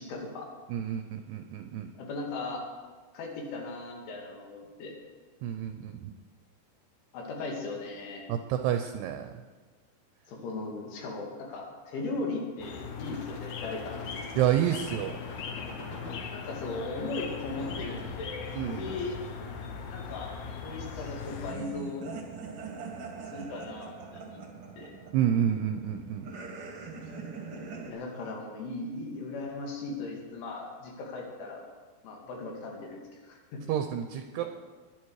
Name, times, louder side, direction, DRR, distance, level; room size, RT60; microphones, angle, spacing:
voice 1, 0.0-0.5 1.9-2.6 3.1-5.0 7.1-8.3 10.3-14.1 16.3-19.2 19.9-20.3 20.6-22.1 23.2-24.5 24.8-24.9 27.9-31.6 32.0-33.7 34.3-34.5, left 3 dB, 85° left, 0 dB, 4.8 m, -38 dB
voice 2, 0.7-1.9 5.4-6.1 8.3-9.3 14.4-15.2 18.5-18.9 25.1-26.3 33.7-34.5, right 10 dB, 80° right, 7 dB, 2.5 m, -29 dB
sound 1, 12.6-21.5, left 6 dB, 70° left, 1.9 m, -39 dB
sound 2, 13.0-16.2 17.5-18.9, left 2 dB, 40° left, 6.0 m, -44 dB
sound 3, 21.4-27.9, right 4 dB, 55° right, 1.6 m, -42 dB
20.5 x 11.0 x 4.8 m, 1.4 s
omnidirectional pair, 5.3 m